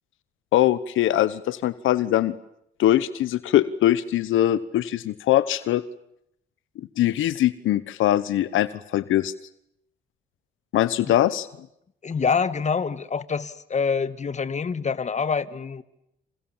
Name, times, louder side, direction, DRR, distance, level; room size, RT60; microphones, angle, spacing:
voice 1, 0.5-2.4 2.8-5.8 6.8-9.3 10.7-11.5, left 13 dB, 80° left, 1.1 m, -22 dB
voice 2, 12.0-15.8, left 5 dB, 35° left, 1.7 m, -26 dB
29.0 x 27.5 x 7.3 m
cardioid pair, 90°, 20 cm